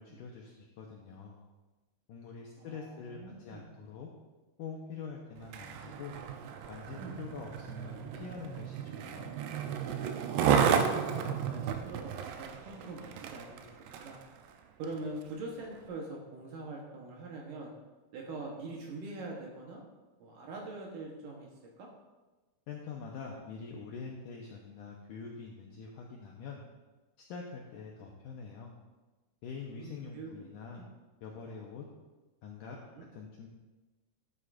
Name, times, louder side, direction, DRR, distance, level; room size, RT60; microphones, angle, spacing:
voice 1, 0.0-1.4 2.1-4.1 4.6-6.1 6.7-9.3 22.7-26.6 27.3-28.7 29.4-30.8 31.2-31.9 32.4-32.8 33.1-33.5, left 5 dB, 90° left, -1 dB, 1.8 m, -45 dB
voice 2, 2.6-3.6 7.0-7.2 11.5-13.7 14.0-14.2 14.8-17.7 18.1-19.8 20.2-21.5 21.8-21.9 29.6-30.8 32.8-33.1, right 2 dB, 70° right, -1 dB, 2.3 m, -43 dB
Skateboard, 5.4-14.2 14.8-15.0, right 7 dB, 85° right, 2.7 m, -33 dB
12.5 x 8.0 x 2.5 m, 1.2 s
omnidirectional pair, 4.6 m